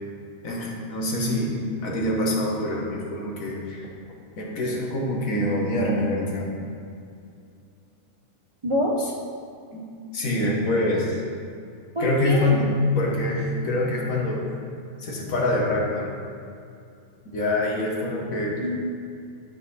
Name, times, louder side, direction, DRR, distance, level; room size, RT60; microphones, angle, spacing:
voice 1, 0.4-1.5 1.8-3.9 4.4-6.5 9.7-9.8 10.1-11.2 12.0-14.5 15.0-16.1 17.3-18.6, left 1 dB, 85° left, -2 dB, 1.7 m, -25 dB
voice 2, 8.6-9.1 12.0-12.6 18.6-18.8, equal, 40° right, -2 dB, 0.4 m, -25 dB
11.5 x 4.0 x 4.1 m, 2.5 s
omnidirectional pair, 1.4 m